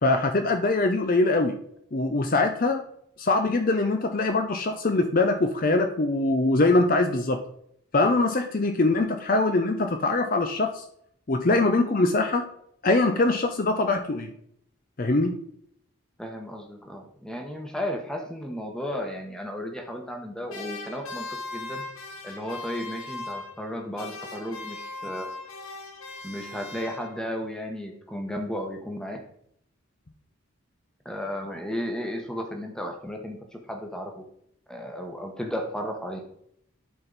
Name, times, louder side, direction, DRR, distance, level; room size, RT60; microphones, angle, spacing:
voice 1, 0.0-1.5 1.9-2.8 3.2-7.4 7.9-10.8 11.3-12.5 12.8-14.3 15.0-15.4, left 2 dB, 40° left, 6 dB, 0.6 m, -23 dB
voice 2, 16.2-21.3 21.5-21.8 22.2-25.3 26.2-29.2 31.0-34.2 34.7-36.2, equal, 5° left, 3 dB, 1.1 m, -34 dB
sound 1, 20.5-23.7 24.0-27.4, left 2 dB, 80° left, 1.3 m, -39 dB
11.0 x 4.4 x 4.0 m, 0.69 s
head